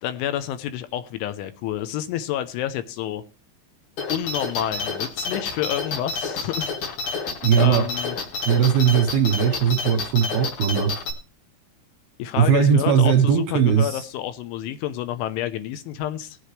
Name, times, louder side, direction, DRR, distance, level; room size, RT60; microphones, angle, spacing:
voice 1, 0.0-3.2 4.1-6.8 7.6-8.2 12.2-16.4, left 11 dB, 80° left, 11 dB, 3.0 m, -29 dB
sound 1, 4.0-11.1, left 4 dB, 50° left, 2.7 m, -29 dB
voice 2, 7.4-7.8 8.5-11.0 12.4-14.1, right 8 dB, 75° right, 3 dB, 2.3 m, -19 dB
20.5 x 7.8 x 3.2 m, 0.35 s
omnidirectional pair, 5.9 m